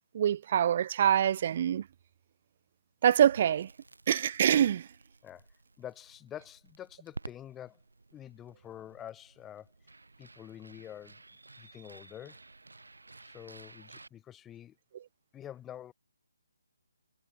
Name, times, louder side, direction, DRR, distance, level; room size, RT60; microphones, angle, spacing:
voice 1, 0.1-1.8 3.0-3.7 4.1-4.9, right 9 dB, 40° right, 0.3 m, -25 dB
Crackle, 3.3-14.1, right 3 dB, 90° right, 1.1 m, -52 dB
voice 2, 5.8-7.8 8.1-9.7 10.2-11.2 11.6-12.4 13.2-14.8 15.3-15.9, left 11 dB, 10° left, 2.1 m, -47 dB
figure-of-eight pair, 150°, 0 cm